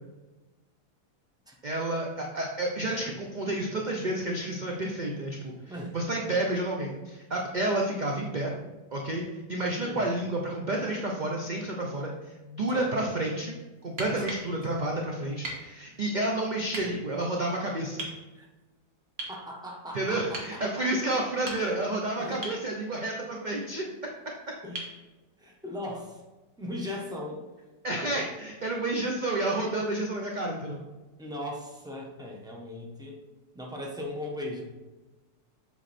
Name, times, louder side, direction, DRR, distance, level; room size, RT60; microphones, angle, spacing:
voice 1, 1.6-5.5 5.9-8.5 8.9-13.5 13.8-18.0 19.9-23.8 27.8-30.8, right 1 dB, 40° right, -1 dB, 0.7 m, -30 dB
voice 2, 9.8-10.2 12.7-13.1 14.2-14.3 16.8-17.0 18.3-18.5 19.3-20.9 22.2-22.4 24.6-24.8 25.4-26.2 26.6-27.4 31.2-33.2 33.5-34.6, left 1 dB, 5° right, -1 dB, 1.1 m, -38 dB
sound 1, 13.8-14.5 15.4-15.6 16.7-16.9 18.0-18.2 19.2-19.4 20.3-20.5 21.3-21.9 22.4-22.6 24.7-25.0 26.8-26.9, right 1 dB, 60° right, 2.0 m, -37 dB
7.9 x 5.3 x 4.3 m, 1.2 s
omnidirectional pair, 1.7 m